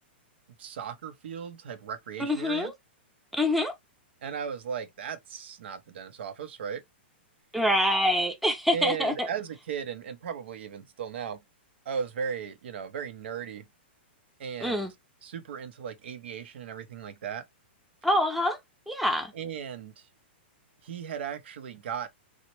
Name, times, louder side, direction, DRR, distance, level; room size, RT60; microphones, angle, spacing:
voice 1, 0.6-2.7 4.2-6.8 8.7-11.4 11.9-13.7 14.4-14.9 15.2-17.4 19.3-20.1 20.8-22.1, right 7 dB, 70° right, 0.6 m, -36 dB
voice 2, 2.2-2.7 3.3-3.7 7.5-9.3 14.6-14.9 18.0-18.6 18.9-19.3, left 1 dB, ahead, 0.5 m, -25 dB
3.1 x 2.1 x 2.9 m
hypercardioid pair, 135°, 6 cm